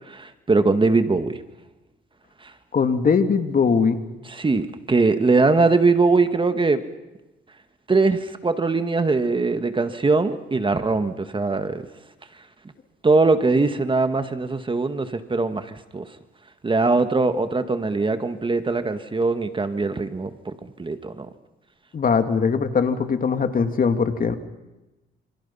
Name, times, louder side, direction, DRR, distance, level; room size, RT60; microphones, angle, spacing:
voice 1, 0.1-1.4 2.4-2.5 4.3-6.8 7.9-11.9 13.0-16.1 16.6-21.3, right 3 dB, 25° right, 9 dB, 1.9 m, -21 dB
voice 2, 2.7-4.0 21.9-24.4, left 5 dB, 45° left, 8 dB, 2.7 m, -21 dB
28.0 x 28.0 x 5.7 m, 1.0 s
cardioid pair, 90°, 20 cm